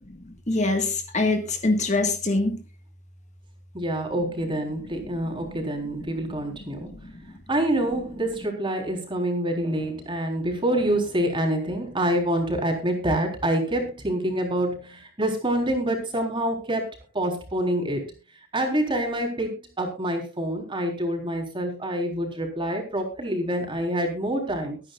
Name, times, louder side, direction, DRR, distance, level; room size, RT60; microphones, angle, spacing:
voice 1, 0.1-2.6 4.5-4.6 5.0-5.5 6.1-7.4, left 2 dB, 35° left, 5 dB, 1.6 m, -27 dB
voice 2, 3.7-6.9 7.5-16.9 17.1-18.1 18.5-24.8, right 1 dB, 25° right, 2 dB, 3.9 m, -26 dB
23.5 x 9.8 x 2.4 m, 0.31 s
head